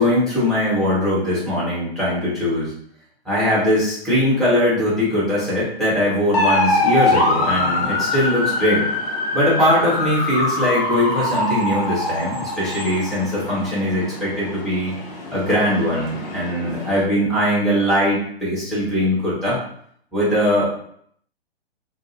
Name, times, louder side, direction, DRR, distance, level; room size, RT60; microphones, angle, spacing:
voice 1, 0.0-2.8 3.2-8.9 9.3-14.9 15.3-19.6 20.1-20.6, left 1 dB, ahead, -10 dB, 1.1 m, -20 dB
sound 1, 6.3-17.0, left 2 dB, 40° left, 0.8 m, -24 dB
2.7 x 2.2 x 4.0 m, 0.66 s
hypercardioid pair, 140°, 31 cm